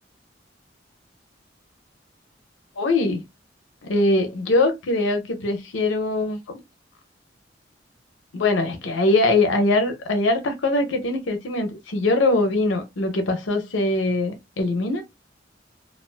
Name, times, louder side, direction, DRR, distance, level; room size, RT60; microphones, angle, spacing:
voice 1, 2.8-3.2 3.8-6.6 8.3-15.0, left 2 dB, 85° left, 0.6 m, -22 dB
2.4 x 2.3 x 2.3 m
head